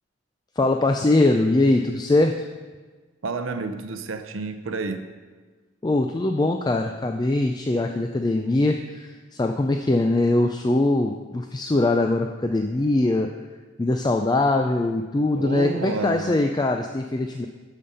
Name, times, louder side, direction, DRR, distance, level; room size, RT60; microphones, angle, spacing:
voice 1, 0.6-2.4 5.8-13.3 13.8-17.5, left 2 dB, 20° left, 5 dB, 0.3 m, -22 dB
voice 2, 3.2-5.1 15.3-16.4, right 3 dB, 80° right, 8 dB, 0.6 m, -30 dB
12.5 x 5.2 x 5.5 m, 1.4 s
head